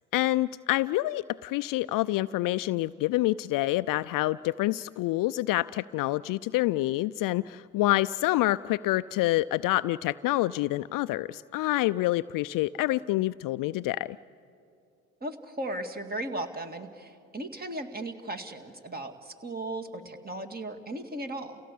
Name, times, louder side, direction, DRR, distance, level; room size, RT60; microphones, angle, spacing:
voice 1, 0.1-14.2, left 17 dB, 50° left, 15 dB, 0.5 m, -27 dB
voice 2, 15.2-21.6, right 1 dB, 20° right, 5 dB, 2.1 m, -36 dB
29.0 x 16.5 x 8.5 m, 2.4 s
hypercardioid pair, 75°, 43 cm